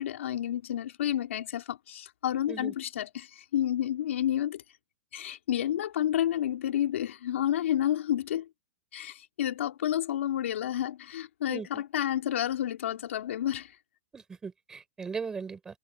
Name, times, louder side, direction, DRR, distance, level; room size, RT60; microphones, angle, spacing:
voice 1, 0.0-4.6 5.1-8.5 8.9-13.7, left 11 dB, 70° left, 3.6 m, -30 dB
voice 2, 11.5-11.8 14.1-15.8, right 5 dB, 10° right, 6.9 m, -38 dB
supercardioid pair, 175°, 7 cm